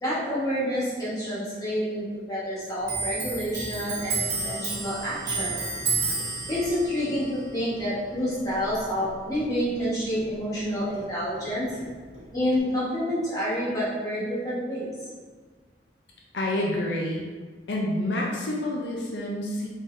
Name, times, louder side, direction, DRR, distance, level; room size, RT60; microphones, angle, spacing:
voice 1, 0.0-5.6 6.5-11.7 12.3-14.9, equal, 20° left, -9 dB, 1.3 m, -28 dB
Clock, 2.8-9.9 10.1-11.5 11.7-12.6, right 4 dB, 75° right, 1.0 m, -32 dB
voice 2, 16.3-17.2 17.7-19.7, left 1 dB, 75° left, -2 dB, 0.5 m, -28 dB
3.9 x 3.4 x 2.6 m, 1.5 s
head